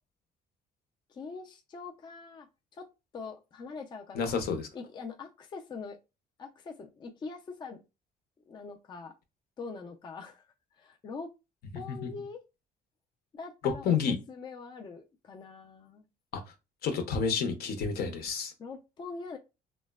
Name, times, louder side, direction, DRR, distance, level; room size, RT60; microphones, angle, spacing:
voice 1, 1.1-2.5 2.7-2.9 3.1-4.3 4.7-6.0 6.4-7.8 8.5-9.1 9.6-10.5 10.8-11.3 11.7-12.4 13.3-16.1 18.6-19.4, left 4 dB, 25° left, 4 dB, 0.3 m, -43 dB
voice 2, 4.1-4.7 12.0-12.1 13.6-14.2 16.3-16.4 16.8-18.5, left 6 dB, 65° left, 6 dB, 0.7 m, -29 dB
3.0 x 2.0 x 2.2 m, 0.26 s
cardioid pair, 110°, 17 cm